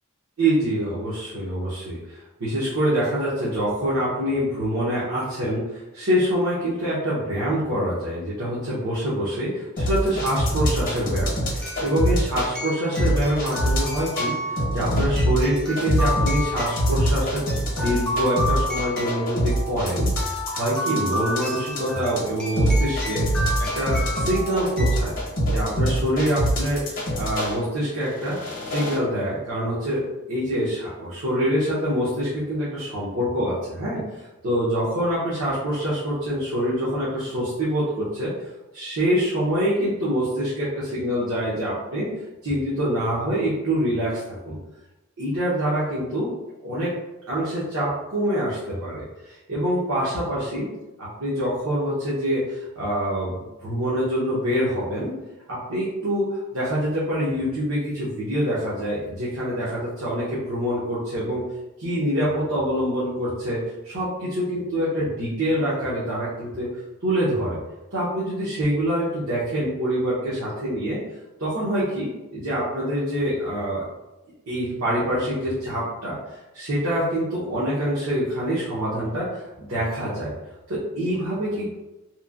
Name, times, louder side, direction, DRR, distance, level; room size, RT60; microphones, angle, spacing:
voice 1, 0.4-17.4 17.8-25.2 25.5-30.0 30.3-38.3 38.7-42.1 42.4-44.2 44.4-44.6 45.2-46.3 46.6-46.9 47.3-50.7 51.0-55.1 55.5-61.4 61.8-66.7 67.0-67.6 67.9-71.0 71.4-73.8 74.5-80.3 80.7-81.7, equal, 75° right, -9 dB, 0.8 m, -25 dB
sound 1, 9.8-12.5 13.0-14.3 14.6-27.5 28.1-29.0, equal, 40° left, 0.7 m, -24 dB
sound 2, 10.1-10.2 11.6-25.0, left 1 dB, 5° left, 0.5 m, -31 dB
3.0 x 2.2 x 2.4 m, 1.0 s
head